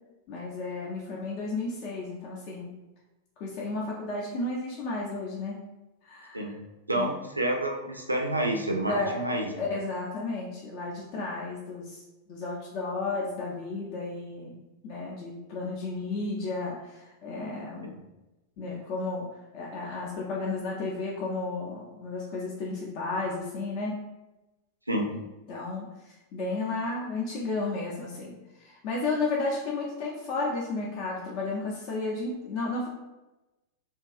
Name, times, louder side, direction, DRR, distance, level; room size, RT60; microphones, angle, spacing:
voice 1, 0.3-2.7 3.4-5.6 6.0-6.6 6.9-7.1 8.9-9.2 9.5-12.0 12.3-14.6 14.8-18.0 18.6-24.0 25.1-25.2 25.5-32.9, left 3 dB, 45° left, -4 dB, 0.5 m, -33 dB
voice 2, 6.9-9.5 24.9-25.1, right 1 dB, 85° right, 2 dB, 0.3 m, -28 dB
2.6 x 2.3 x 2.4 m, 1.0 s
figure-of-eight pair, 90°, 0 cm